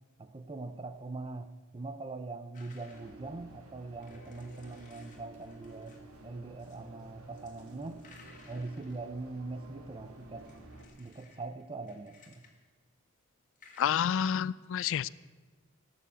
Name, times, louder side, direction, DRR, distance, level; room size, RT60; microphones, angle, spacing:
voice 1, 0.2-8.0 8.5-10.5 11.0-12.4, right 3 dB, 25° right, 10 dB, 0.6 m, -42 dB
sound 1, 2.5-3.2 3.9-6.1 6.6-7.0 7.3-9.0 10.2-12.6 13.6-13.9, left 4 dB, 35° left, 2.4 m, -59 dB
sound 2, 2.9-10.8, right 2 dB, 85° right, 2.5 m, -52 dB
voice 2, 13.8-15.1, left 8 dB, 60° left, 19 dB, 0.3 m, -29 dB
18.0 x 7.1 x 8.5 m, 1.4 s
head